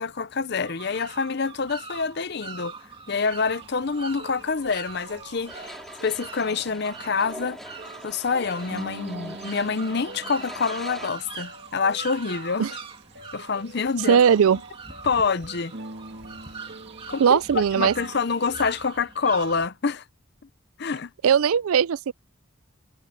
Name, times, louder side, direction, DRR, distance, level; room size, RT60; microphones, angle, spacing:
voice 1, 0.0-2.7 3.1-5.7 6.0-7.6 8.0-12.8 13.3-14.2 15.0-15.7 17.1-20.0 20.8-21.1, left 5 dB, 50° left, 0.6 m, -26 dB
sound 1, 0.6-19.7, right 4 dB, 25° right, 2.3 m, -42 dB
sound 2, 3.1-18.6, right 2 dB, 50° right, 2.2 m, -44 dB
sound 3, 5.5-11.1, equal, ahead, 4.5 m, -42 dB
voice 2, 14.1-14.6 17.2-17.9 21.2-22.1, right 7 dB, 85° right, 0.4 m, -19 dB
head